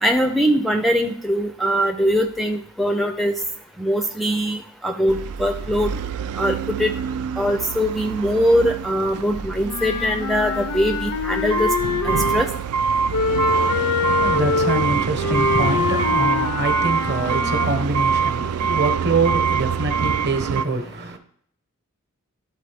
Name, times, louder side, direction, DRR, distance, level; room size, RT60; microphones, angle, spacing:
voice 1, 0.0-3.3 3.8-5.9 6.4-6.9 7.4-11.7 12.0-12.5, equal, ahead, 0.4 m, -21 dB
sound 1, 5.1-20.6, right 6 dB, 75° right, 0.3 m, -25 dB
Wind instrument woodwind instrument, 9.6-12.5 13.1-17.9, left 5 dB, 85° left, 0.5 m, -25 dB
voice 2, 13.7-21.2, right 3 dB, 50° right, 1.0 m, -25 dB
12.0 x 4.1 x 3.4 m
head